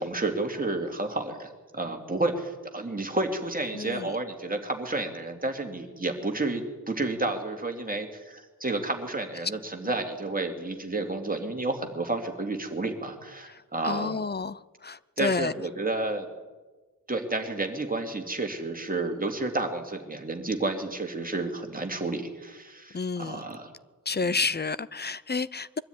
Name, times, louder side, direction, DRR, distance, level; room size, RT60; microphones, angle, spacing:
voice 1, 0.0-14.2 15.2-16.3 17.1-23.7 24.2-24.4, right 2 dB, 25° right, 2.6 m, -31 dB
voice 2, 3.7-4.1 13.8-15.5 22.9-23.4 24.1-25.8, left 4 dB, 30° left, 0.5 m, -30 dB
22.5 x 13.0 x 9.6 m
wide cardioid pair, 110°, 34 cm